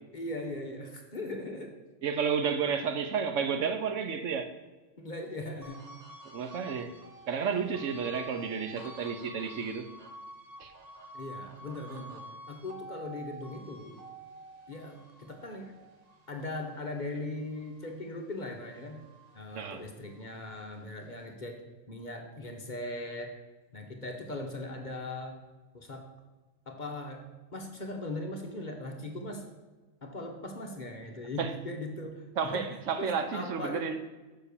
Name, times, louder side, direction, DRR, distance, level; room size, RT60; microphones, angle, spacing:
voice 1, 0.1-1.7 5.0-5.9 6.7-6.8 11.1-14.0 14.7-15.7 16.3-19.0 19.3-21.6 21.9-23.3 23.7-25.4 25.7-26.0 26.7-27.2 27.5-29.4 30.0-32.7 33.0-33.9, left 2 dB, 40° left, 1.0 m, -39 dB
voice 2, 2.0-4.5 6.3-7.0 7.3-9.9 10.6-10.7 19.5-19.8 31.4-31.5 32.4-34.0, right 6 dB, 70° right, 1.0 m, -31 dB
sound 1, 5.6-18.2 18.6-20.3, right 1 dB, 30° right, 1.0 m, -49 dB
7.2 x 5.9 x 6.8 m
omnidirectional pair, 1.4 m